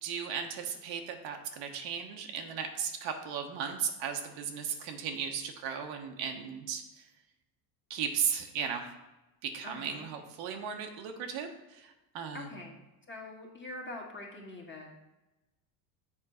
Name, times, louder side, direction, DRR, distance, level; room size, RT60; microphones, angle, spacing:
voice 1, 0.0-6.8 7.9-8.9 9.4-12.5, right 7 dB, 65° right, 4 dB, 1.2 m, -36 dB
voice 2, 9.6-10.1 12.3-12.7 13.1-14.9, left 2 dB, 25° left, -1 dB, 1.7 m, -44 dB
7.3 x 3.7 x 5.1 m, 1.0 s
supercardioid pair, 100°, 48 cm